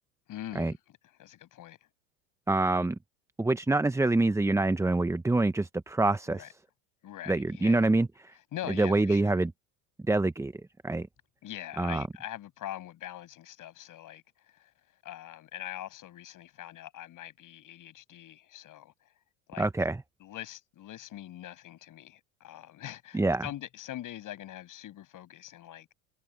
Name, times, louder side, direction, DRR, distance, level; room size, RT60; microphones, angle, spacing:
voice 1, 0.3-1.9 6.3-6.5 7.0-7.9 8.5-9.4 11.4-14.7 15.0-19.1 19.5-19.7 20.2-25.9, left 13 dB, 45° left, 7.0 m, -43 dB
voice 2, 2.5-3.0 3.4-6.5 7.3-8.3 8.8-9.5 10.1-10.5 10.8-11.1 11.8-12.0 19.6-20.0 23.1-23.4, right 2 dB, 5° right, 0.9 m, -26 dB
hypercardioid pair, 75°, 43 cm